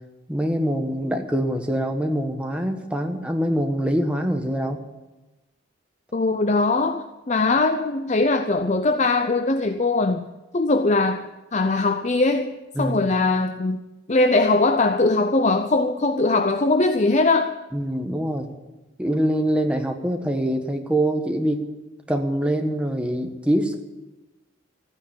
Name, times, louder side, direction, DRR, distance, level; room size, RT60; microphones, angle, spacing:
voice 1, 0.3-4.8 12.7-13.0 17.7-18.5 19.0-21.7 22.1-23.8, right 1 dB, 5° right, 3 dB, 1.3 m, -24 dB
voice 2, 6.1-10.3 10.5-13.8 14.1-17.5, left 3 dB, 35° left, 8 dB, 0.5 m, -21 dB
14.0 x 9.5 x 8.8 m, 1.1 s
head